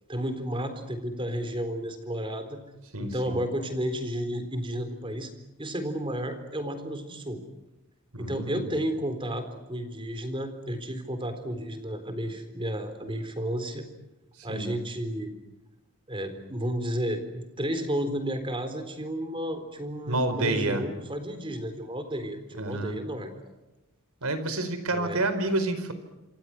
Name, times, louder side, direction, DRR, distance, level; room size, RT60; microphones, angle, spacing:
voice 1, 0.1-2.6 3.0-5.3 5.6-7.4 8.2-13.9 14.4-15.3 16.1-23.3 24.9-25.2, equal, 25° right, 9 dB, 3.9 m, -32 dB
voice 2, 2.9-3.4 8.1-8.7 14.4-14.7 20.1-20.8 22.5-23.0 24.2-25.9, right 2 dB, 85° right, 10 dB, 4.6 m, -29 dB
27.5 x 27.0 x 6.2 m, 1.0 s
head